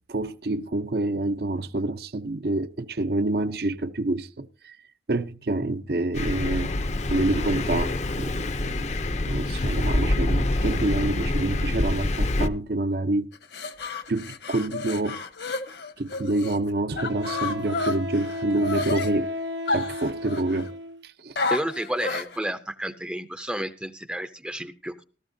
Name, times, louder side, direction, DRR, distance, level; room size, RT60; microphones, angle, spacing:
voice 1, 0.1-4.8 5.1-6.7 7.1-8.9 9.2-13.3 14.1-15.2 16.0-19.3 19.7-20.7 21.0-21.4, right 2 dB, 60° right, 0.6 m, -27 dB
Thunder, 6.1-12.5, left 2 dB, 40° left, 0.6 m, -26 dB
sound 1, 13.3-16.6 17.0-19.1 19.7-20.7 21.4-22.4, left 3 dB, 75° left, 1.5 m, -31 dB
Wind instrument woodwind instrument, 15.7-15.8 17.0-21.0, left 1 dB, 80° right, 1.0 m, -34 dB
voice 2, 21.5-24.9, right 1 dB, 5° right, 0.6 m, -31 dB
18.0 x 13.5 x 2.7 m
head